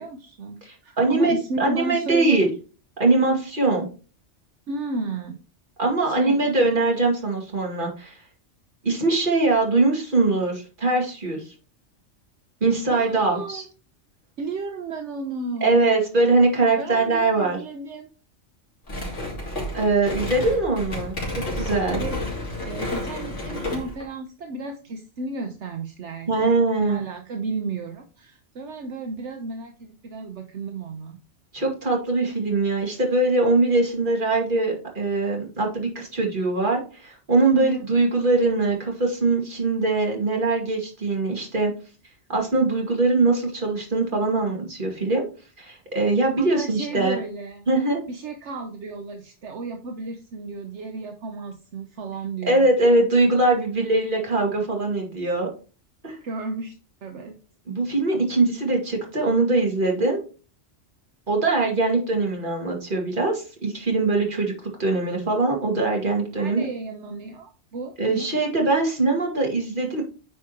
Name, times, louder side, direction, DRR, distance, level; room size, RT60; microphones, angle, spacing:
voice 1, 0.0-2.4 4.7-5.4 6.0-6.4 12.9-13.7 14.4-15.8 16.8-18.1 22.0-22.2 22.6-26.5 26.8-31.2 37.5-37.8 46.4-47.6 48.1-52.7 56.2-56.7 57.0-57.4 66.4-68.3, right 3 dB, 70° right, 5 dB, 1.1 m, -33 dB
voice 2, 0.6-2.5 3.0-3.9 5.8-8.2 8.8-11.5 12.6-13.6 15.6-17.6 19.7-22.0 26.3-27.0 31.5-41.7 42.3-45.2 45.6-47.2 47.7-48.0 52.5-55.5 56.0-56.2 57.7-60.2 61.3-66.7 68.0-70.0, right 3 dB, 45° right, 0 dB, 2.2 m, -22 dB
sound 1, 18.9-24.0, left 1 dB, 80° left, 2.9 m, -30 dB
9.1 x 4.9 x 2.9 m, 0.35 s
omnidirectional pair, 1.2 m